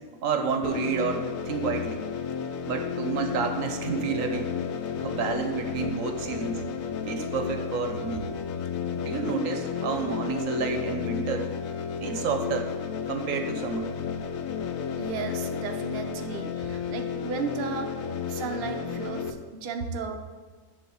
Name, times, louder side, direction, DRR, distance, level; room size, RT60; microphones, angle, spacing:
voice 1, 0.2-2.1 2.7-4.5 4.9-6.6 7.1-8.3 8.9-11.5 12.0-12.7 13.1-13.9, right 5 dB, 75° right, 6 dB, 1.2 m, -30 dB
sound 1, 0.6-19.3, left 7 dB, 90° left, 1.0 m, -32 dB
voice 2, 15.0-18.0 18.3-20.1, right 5 dB, 55° right, 4 dB, 0.8 m, -34 dB
10.5 x 3.6 x 7.0 m, 1.4 s
omnidirectional pair, 1.4 m